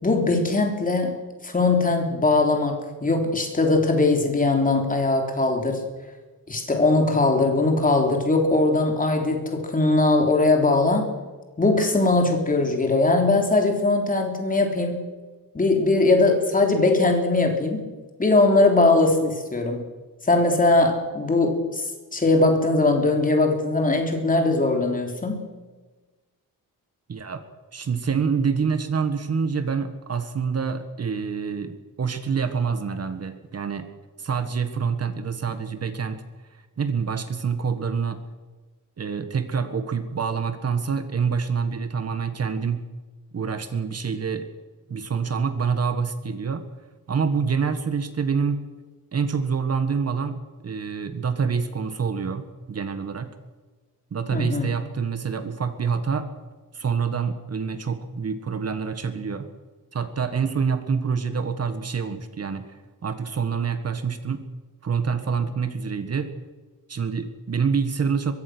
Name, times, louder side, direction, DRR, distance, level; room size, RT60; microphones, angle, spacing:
voice 1, 0.0-5.8 6.5-11.1 11.6-15.1 15.5-17.9 18.2-19.8 20.2-21.8 22.1-25.4 54.3-54.7, left 2 dB, 25° left, 3 dB, 3.5 m, -20 dB
voice 2, 27.1-27.4 27.7-33.9 34.2-36.2 36.5-38.2 39.0-42.8 43.3-44.5 44.9-46.6 47.1-48.6 49.1-50.4 50.6-53.3 54.1-56.3 56.7-59.5 59.9-64.4 64.8-66.3 66.9-68.3, right 6 dB, 45° right, 9 dB, 1.6 m, -26 dB
23.5 x 22.5 x 6.3 m, 1.3 s
wide cardioid pair, 180°, 36 cm